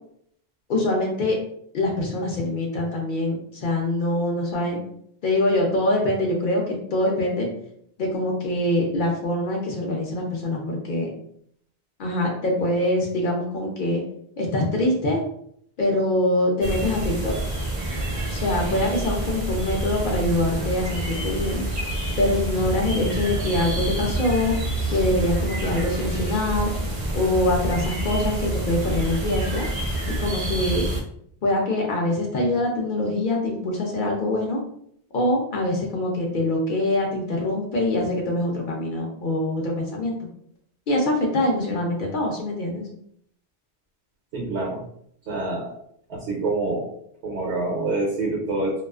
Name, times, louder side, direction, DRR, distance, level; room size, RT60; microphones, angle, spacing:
voice 1, 0.7-1.4 1.7-4.8 5.2-7.5 8.0-11.1 12.0-14.0 14.4-15.2 15.8-17.4 18.3-21.6 22.2-24.5 24.9-26.7 27.1-29.7 30.2-30.8 31.4-34.6 35.1-40.2 40.9-42.9, left 1 dB, 60° left, 0 dB, 0.6 m, -24 dB
sound 1, 16.6-31.0, right 1 dB, 40° right, 0.5 m, -27 dB
voice 2, 44.3-44.8 45.3-45.8 46.1-46.9 47.2-48.8, right 2 dB, 80° right, -3 dB, 0.9 m, -26 dB
2.3 x 2.3 x 2.3 m, 0.68 s
omnidirectional pair, 1.1 m